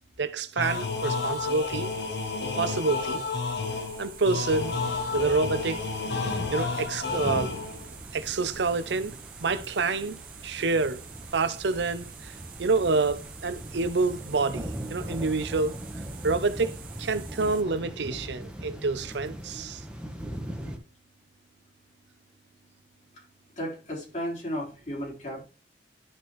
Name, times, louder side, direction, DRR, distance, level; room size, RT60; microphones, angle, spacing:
voice 1, 0.2-1.9 2.6-3.2 4.0-4.8 5.1-5.8 6.5-7.5 8.1-9.1 9.4-11.0 11.3-15.8 16.2-19.8, right 3 dB, 80° right, 0.6 m, -27 dB
sound 1, 0.6-7.9, left 4 dB, 70° left, 1.0 m, -31 dB
sound 2, 0.6-17.6, right 7 dB, 50° right, 0.9 m, -47 dB
sound 3, 4.4-20.8, equal, 5° right, 1.1 m, -40 dB
voice 2, 23.6-25.4, equal, 40° left, 4.1 m, -34 dB
11.0 x 4.4 x 3.1 m
head